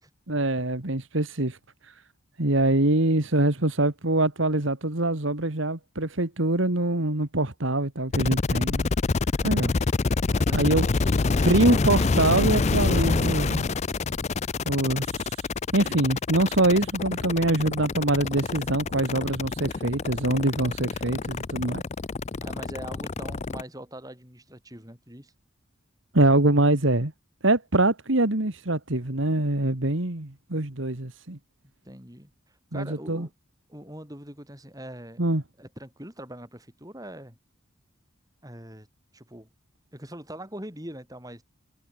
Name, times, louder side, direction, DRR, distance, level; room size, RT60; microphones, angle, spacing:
voice 1, 0.3-1.6 2.4-8.9 9.4-9.7 10.5-10.9 11.4-13.7 14.7-15.3 15.7-21.8 26.1-27.1 27.4-31.4 32.7-33.3 35.2-35.4, right 2 dB, 70° right, 2.1 m, -24 dB
sound 1, 8.1-23.6, left 4 dB, 30° left, 0.4 m, -26 dB
voice 2, 9.4-9.8 10.1-10.6 11.4-11.9 22.4-25.3 31.8-32.3 32.7-33.3 33.7-35.2 35.6-37.4 38.4-38.9 39.1-39.5 39.9-41.4, right 1 dB, 15° right, 7.1 m, -42 dB
head